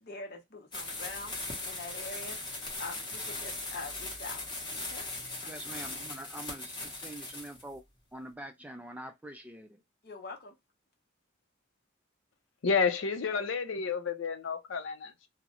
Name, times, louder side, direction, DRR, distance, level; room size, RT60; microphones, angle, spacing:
voice 1, 0.0-2.4 2.8-4.4 4.8-5.0 5.4-5.6 10.0-10.5, left 3 dB, 55° left, 0.9 m, -44 dB
sound 1, 0.7-7.6, left 2 dB, 25° left, 0.9 m, -39 dB
voice 2, 5.4-7.8 8.1-9.8, right 1 dB, 5° right, 0.3 m, -45 dB
voice 3, 12.6-15.3, left 5 dB, 85° left, 0.5 m, -30 dB
2.4 x 2.0 x 2.8 m
head